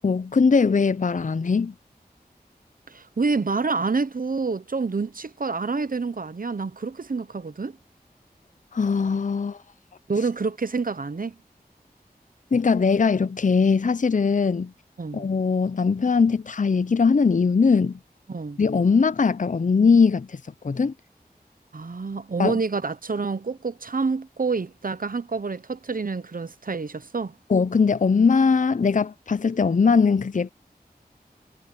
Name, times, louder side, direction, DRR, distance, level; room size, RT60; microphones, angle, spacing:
voice 1, 0.0-1.7 8.7-9.6 12.5-14.7 15.1-18.0 18.6-20.4 20.6-20.9 22.4-22.5 27.5-30.5, left 5 dB, 50° left, 0.5 m, -20 dB
voice 2, 2.9-7.8 10.1-11.3 15.0-15.2 18.3-18.6 21.7-27.3, right 4 dB, 60° right, 0.9 m, -28 dB
wide cardioid pair, 50°, 16 cm